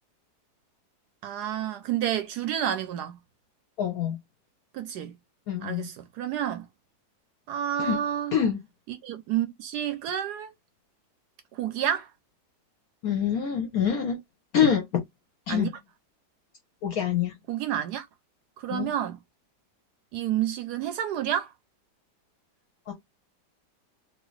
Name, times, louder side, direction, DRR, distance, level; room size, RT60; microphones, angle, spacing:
voice 1, 1.2-3.2 4.7-5.2 5.6-6.7 7.5-8.3 8.9-10.5 11.5-12.1 15.5-15.7 17.5-18.1 18.6-19.2 20.1-21.5, right 10 dB, 75° right, 1.0 m, -29 dB
voice 2, 3.8-4.2 5.5-5.9 7.8-8.0 8.3-8.6 13.0-14.2 14.5-15.0 15.5-15.7 16.8-17.4 18.7-18.9 22.9-23.0, left 8 dB, 65° left, 1.0 m, -25 dB
2.8 x 2.8 x 3.1 m
omnidirectional pair, 1.9 m